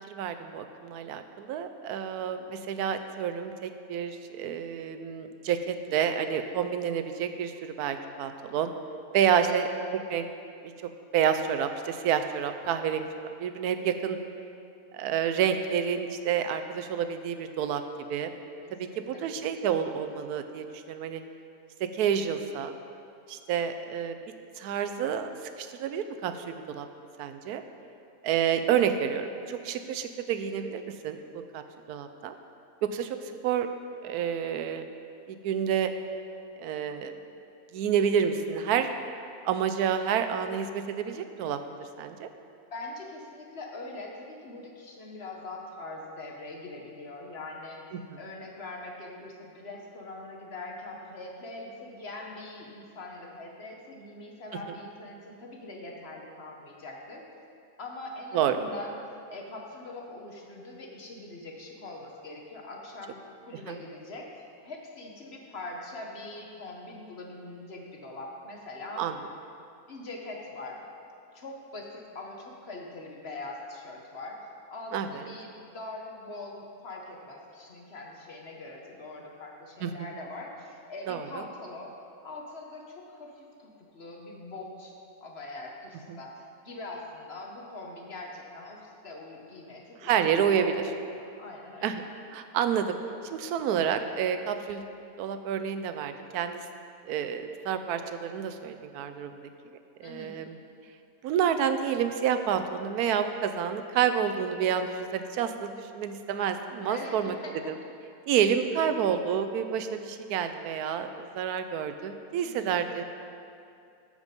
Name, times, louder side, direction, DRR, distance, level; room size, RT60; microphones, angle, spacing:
voice 1, 0.1-8.7 9.1-10.3 11.1-13.1 13.4-14.2 14.9-17.8 18.1-18.3 19.0-21.2 21.8-22.7 23.3-24.2 24.6-25.3 25.6-26.9 27.2-27.6 28.2-31.6 31.9-32.4 32.8-33.7 34.0-34.9 35.3-35.9 36.6-37.1 37.7-38.9 39.4-41.6 42.0-42.3 48.1-48.2 58.3-58.6 63.7-63.8 69.0-69.1 74.9-75.2 79.8-80.1 81.1-81.4 86.1-86.2 90.0-90.7 91.8-92.0 92.3-93.0 93.2-94.8 95.2-96.7 97.0-99.4 100.0-100.6 101.2-107.3 107.7-107.8 108.3-113.0, right 8 dB, 85° right, 8 dB, 1.1 m, -29 dB
voice 2, 9.2-9.6 18.6-19.3 42.7-47.9 48.2-57.3 57.8-58.9 59.3-69.1 69.9-70.8 71.3-74.4 74.7-81.9 82.2-90.8 91.0-91.9 100.0-100.4 106.9-107.5 112.4-112.8, left 2 dB, 45° left, 0 dB, 1.2 m, -42 dB
13.5 x 5.0 x 5.2 m, 2.5 s
omnidirectional pair, 1.6 m